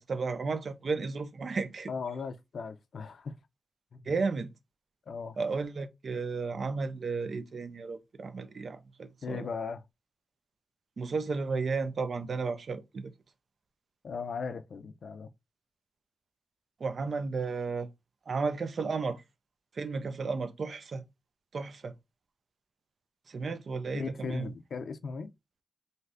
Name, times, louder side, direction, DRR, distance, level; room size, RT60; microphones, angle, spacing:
voice 1, 0.0-1.9 4.0-4.5 5.4-9.5 11.0-13.1 16.8-17.9 18.3-19.2 19.7-21.0 21.5-21.9 23.3-24.5, right 4 dB, 65° right, 0.4 m, -33 dB
voice 2, 1.9-3.3 3.9-4.0 5.1-5.4 9.2-9.8 14.0-15.3 23.9-25.3, left 5 dB, 85° left, 0.4 m, -37 dB
3.3 x 2.6 x 2.4 m
wide cardioid pair, 125°, 0 cm